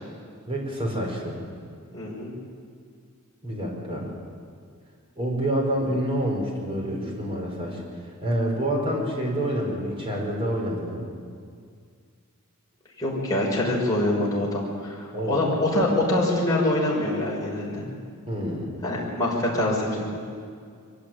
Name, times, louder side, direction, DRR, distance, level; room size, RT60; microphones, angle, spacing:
voice 1, 0.5-1.4 3.4-4.1 5.2-7.8 8.2-11.0 15.1-15.5 18.3-18.7, right 1 dB, 25° right, -1 dB, 4.7 m, -27 dB
voice 2, 1.9-2.3 13.0-17.8 18.8-20.1, left 1 dB, 15° left, -5 dB, 5.6 m, -25 dB
23.5 x 15.0 x 9.1 m, 2.1 s
head